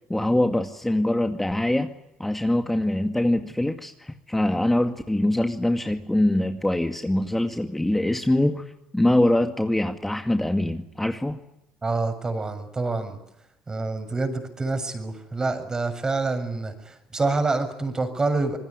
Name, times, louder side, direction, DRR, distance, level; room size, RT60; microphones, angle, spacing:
voice 1, 0.1-1.9 2.2-8.6 8.9-11.4, left 1 dB, 10° left, 6 dB, 2.2 m, -23 dB
voice 2, 11.8-13.2 13.7-18.6, right 3 dB, 30° right, 9 dB, 7.2 m, -27 dB
26.0 x 21.0 x 9.9 m, 0.84 s
hypercardioid pair, 60°, 2 cm